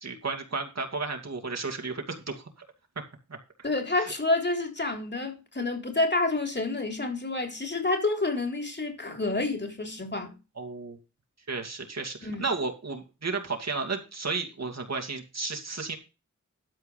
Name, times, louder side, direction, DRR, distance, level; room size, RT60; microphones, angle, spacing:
voice 1, 0.0-2.4 4.0-4.1 10.6-11.0 11.5-16.0, right 4 dB, 60° right, 2.4 m, -33 dB
voice 2, 3.6-10.3 12.2-12.5, left 2 dB, 35° left, 3.6 m, -29 dB
12.5 x 4.8 x 5.6 m
cardioid pair, 40°, 30 cm